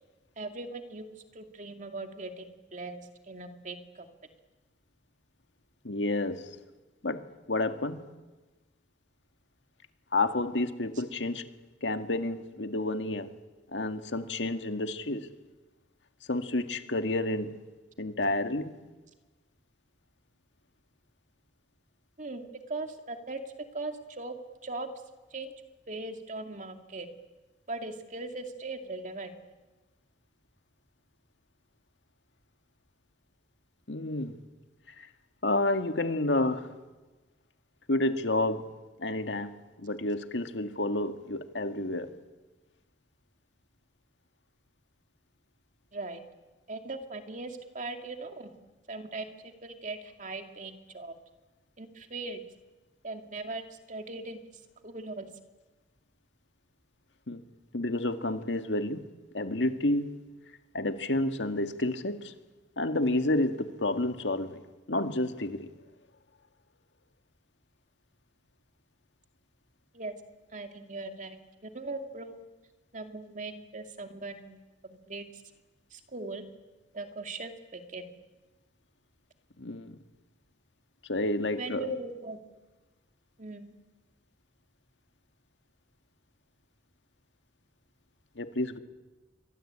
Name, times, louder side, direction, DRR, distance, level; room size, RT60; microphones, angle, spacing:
voice 1, 0.4-4.1 22.2-23.4 23.7-24.4 24.6-24.9 25.3-25.5 25.9-27.1 27.7-29.3 45.9-46.2 46.7-48.5 48.9-51.2 51.8-52.4 53.0-54.4 54.8-55.3 69.9-70.1 70.5-72.5 72.9-75.4 75.9-76.4 76.9-78.1 81.5-82.4 83.4-83.7, right 3 dB, 45° right, 6 dB, 2.4 m, -40 dB
voice 2, 5.8-6.5 7.0-7.2 7.5-8.0 10.1-11.4 11.8-13.3 13.7-15.3 16.3-17.5 18.0-18.7 33.9-34.4 35.0-35.1 35.4-36.7 37.9-38.7 39.0-39.5 39.8-42.1 52.2-52.3 57.3-57.4 57.7-59.0 59.3-60.2 60.7-62.3 62.8-64.6 64.9-65.7 79.6-80.0 81.1-82.0 88.4-88.8, left 2 dB, 85° left, 8 dB, 1.8 m, -30 dB
28.5 x 23.5 x 8.8 m, 1.2 s
head